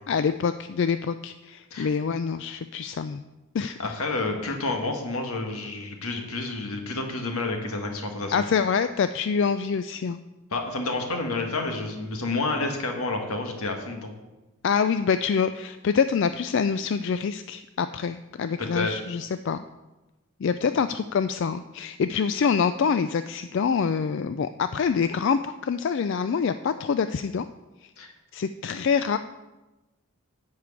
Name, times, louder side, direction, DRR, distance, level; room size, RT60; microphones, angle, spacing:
voice 1, 0.1-3.2 3.5-3.9 8.3-10.2 14.6-19.6 20.4-27.5 27.8-27.9 28.3-29.2, left 6 dB, 55° left, 11 dB, 0.3 m, -26 dB
voice 2, 3.6-8.4 10.5-14.1 18.6-18.9 28.0-28.1, left 3 dB, 75° left, 3 dB, 1.5 m, -29 dB
11.0 x 4.8 x 8.3 m, 1.1 s
head